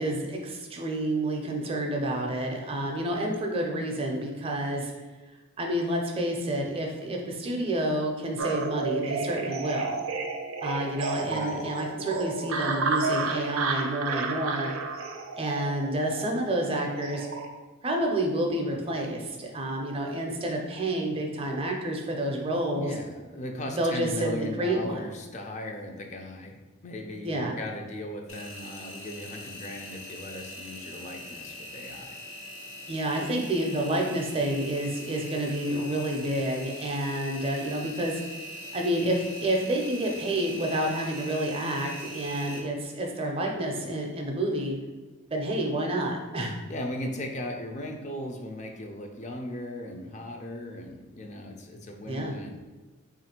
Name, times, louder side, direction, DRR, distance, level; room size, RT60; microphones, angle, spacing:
voice 1, 0.0-4.9 5.6-10.0 10.6-14.7 15.4-17.3 17.8-22.9 23.7-25.0 27.2-27.6 32.9-38.2 38.7-44.8 45.3-46.5 52.0-52.4, right 1 dB, 25° right, 1 dB, 0.5 m, -29 dB
sound 1, 8.4-17.5, right 4 dB, 85° right, 0.5 m, -32 dB
voice 2, 11.2-11.7 22.8-26.6 26.8-32.2 46.7-52.6, left 1 dB, 35° left, 3 dB, 0.4 m, -37 dB
Engine, 28.3-42.6, equal, 65° left, 0.7 m, -42 dB
3.4 x 2.5 x 4.3 m, 1.2 s
head